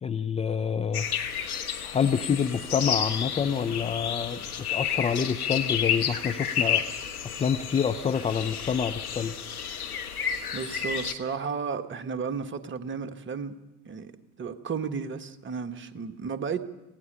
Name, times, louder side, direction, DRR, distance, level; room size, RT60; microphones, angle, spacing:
voice 1, 0.0-1.5 1.8-6.8 7.2-9.4, left 7 dB, 15° left, 7 dB, 0.6 m, -27 dB
sound 1, 0.9-11.1, left 8 dB, 75° left, 1.4 m, -31 dB
voice 2, 10.5-13.5 13.8-14.1 14.4-16.6, right 5 dB, 25° right, 9 dB, 1.6 m, -33 dB
26.5 x 17.5 x 5.6 m, 0.98 s
figure-of-eight pair, 70°, 44 cm